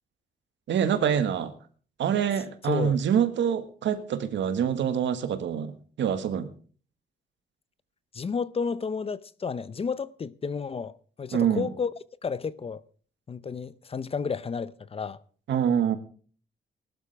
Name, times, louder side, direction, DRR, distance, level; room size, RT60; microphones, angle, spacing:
voice 1, 0.7-1.5 2.0-6.5 11.3-11.7 15.5-16.0, right 8 dB, 85° right, 1.6 m, -25 dB
voice 2, 2.6-3.0 8.1-11.9 12.2-12.8 13.3-15.2, left 5 dB, 30° left, 0.6 m, -31 dB
19.5 x 12.0 x 3.4 m
cardioid pair, 130°, 19 cm